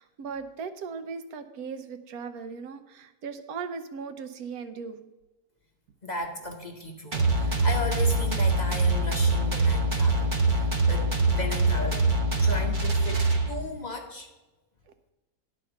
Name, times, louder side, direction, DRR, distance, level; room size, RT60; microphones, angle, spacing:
voice 1, 0.0-5.1, right 5 dB, 65° right, 9 dB, 1.2 m, -38 dB
voice 2, 6.0-12.1 12.4-14.3, left 2 dB, 35° left, 2 dB, 0.7 m, -36 dB
sound 1, 7.1-13.8, right 2 dB, 35° right, 0.8 m, -24 dB
11.0 x 4.3 x 6.7 m, 1.1 s
omnidirectional pair, 1.8 m